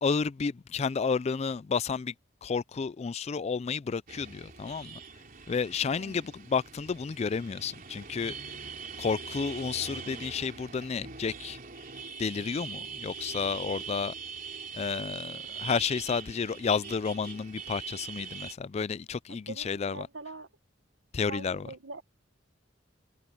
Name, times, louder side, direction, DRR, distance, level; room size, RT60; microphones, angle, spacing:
voice 1, 0.0-2.1 2.4-5.0 5.5-8.3 9.0-11.6 12.2-14.1 14.7-20.1 21.1-21.7, left 5 dB, 35° left, 0.3 m, -31 dB
sound 1, 4.1-18.5, right 5 dB, 50° right, 3.9 m, -42 dB
voice 2, 19.3-20.5 21.3-22.0, right 3 dB, 90° right, 1.6 m, -43 dB
head